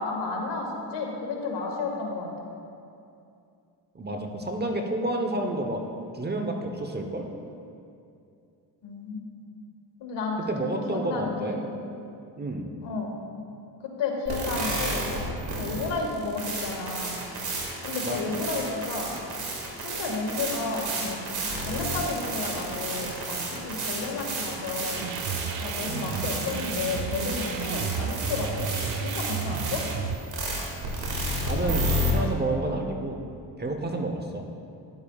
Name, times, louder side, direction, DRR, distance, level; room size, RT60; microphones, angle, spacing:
voice 1, 0.0-2.3 8.8-9.3 10.0-10.4 10.9-11.6 12.8-13.1 13.8-15.0 15.5-17.2 17.8-19.1 19.8-21.2 21.7-25.1 25.6-28.7 29.0-29.8, left 3 dB, 70° left, 0 dB, 1.9 m, -32 dB
voice 2, 3.9-5.8 6.1-7.3 10.5-11.7 12.4-12.7 18.0-18.3 31.5-33.2 33.6-34.4, right 1 dB, 25° right, 3 dB, 0.9 m, -30 dB
sound 1, 14.3-32.1, right 1 dB, 60° right, 2.3 m, -32 dB
sound 2, 24.9-30.2, right 6 dB, 80° right, 0.7 m, -32 dB
12.0 x 10.5 x 2.4 m, 2.5 s
cardioid pair, 85°, 44 cm